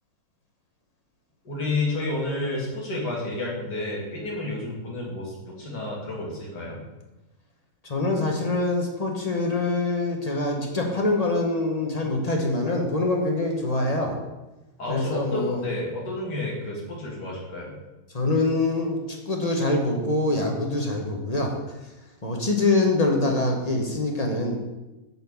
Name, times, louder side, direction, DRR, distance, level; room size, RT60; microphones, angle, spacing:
voice 1, 1.4-6.8 14.8-17.8, left 2 dB, 90° left, -3 dB, 2.8 m, -30 dB
voice 2, 7.9-14.2 14.9-15.6 18.1-19.0 19.3-21.6 22.2-24.6, left 2 dB, 25° left, 1 dB, 1.1 m, -24 dB
8.1 x 4.3 x 7.1 m, 1.1 s
omnidirectional pair, 1.7 m